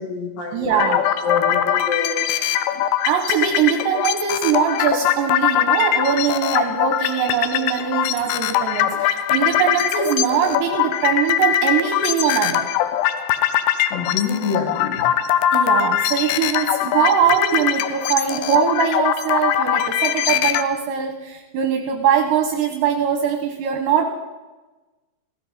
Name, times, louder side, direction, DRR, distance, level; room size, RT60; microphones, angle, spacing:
voice 1, 0.0-2.3 13.9-15.1, left 5 dB, 55° left, -3 dB, 2.8 m, -26 dB
voice 2, 0.5-1.1 3.1-12.7 15.5-24.1, right 8 dB, 75° right, 4 dB, 2.8 m, -21 dB
sound 1, 0.7-20.6, left 11 dB, 90° left, 2.5 m, -21 dB
16.0 x 15.5 x 4.1 m, 1.2 s
omnidirectional pair, 5.9 m